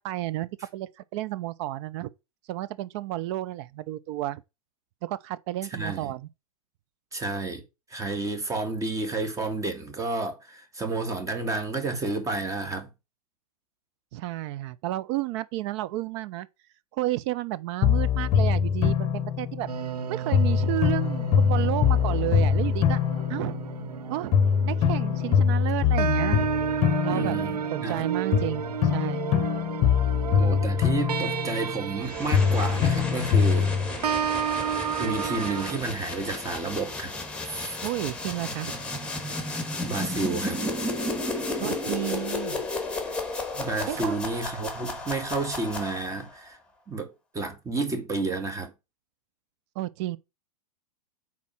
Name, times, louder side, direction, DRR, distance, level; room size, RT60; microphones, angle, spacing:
voice 1, 0.0-2.1 2.5-4.4 5.0-6.3 14.1-16.5 17.0-19.7 20.1-23.0 23.3-23.5 24.1-24.3 24.7-26.4 27.0-27.4 27.7-29.2 37.8-38.8 41.6-42.6 43.9-44.1 49.8-50.2, right 15 dB, 50° right, 0.7 m, -31 dB
voice 2, 5.7-6.1 7.1-7.6 7.9-12.9 27.1-28.1 30.3-33.7 35.0-37.1 37.5-37.8 39.8-40.6 43.5-46.6 46.9-48.7, right 3 dB, 15° right, 2.2 m, -31 dB
sound 1, 17.8-20.0 20.3-24.0 24.3-28.0 28.3-32.0 32.3-33.9, left 7 dB, 35° left, 1.0 m, -24 dB
sound 2, 19.7-35.8, right 8 dB, 85° right, 0.5 m, -32 dB
sound 3, 32.0-46.3, left 2 dB, 5° left, 2.5 m, -33 dB
8.3 x 4.3 x 5.9 m
hypercardioid pair, 105°, 19 cm